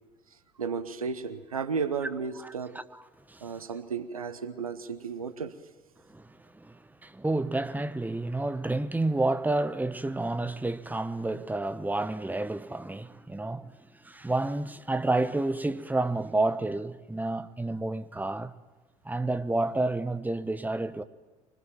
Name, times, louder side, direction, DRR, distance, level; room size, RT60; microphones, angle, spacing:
voice 1, 0.6-2.8 3.4-5.5, right 5 dB, 90° right, 1.1 m, -33 dB
voice 2, 2.4-3.0 3.3-3.6 6.1-13.7 14.0-18.5 19.0-21.0, right 2 dB, 10° right, 1.3 m, -30 dB
25.0 x 21.0 x 9.1 m
figure-of-eight pair, 55°, 18 cm